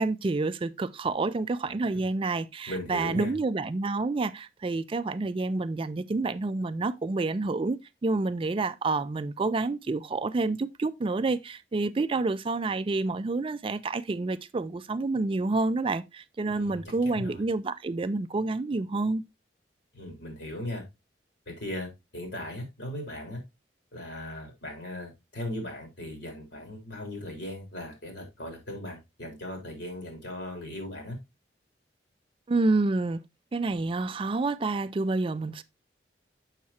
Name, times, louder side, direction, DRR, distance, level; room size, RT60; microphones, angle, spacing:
voice 1, 0.0-19.2 32.5-33.2 33.5-35.6, right 3 dB, 30° right, 0.4 m, -28 dB
voice 2, 2.7-3.3 16.5-17.4 19.9-20.8 21.5-23.4 23.9-31.2, left 1 dB, 75° left, 3.7 m, -38 dB
7.3 x 5.9 x 2.8 m
head